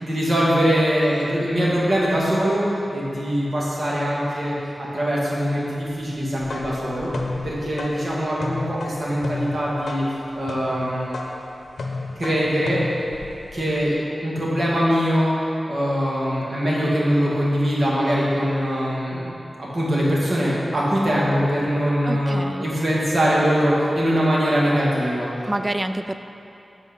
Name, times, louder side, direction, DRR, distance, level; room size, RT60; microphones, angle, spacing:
voice 1, 0.0-2.7 2.9-7.1 7.4-10.0 10.3-11.2 12.2-12.8 13.5-14.0 14.2-15.3 15.7-19.3 19.6-25.3, equal, 50° right, -6 dB, 1.9 m, -22 dB
sound 1, 6.2-13.9, left 3 dB, 80° left, 0.7 m, -33 dB
voice 2, 22.1-22.7 25.4-26.2, right 1 dB, 25° right, 9 dB, 0.3 m, -27 dB
8.2 x 4.5 x 5.5 m, 2.7 s
wide cardioid pair, 90°, 0 cm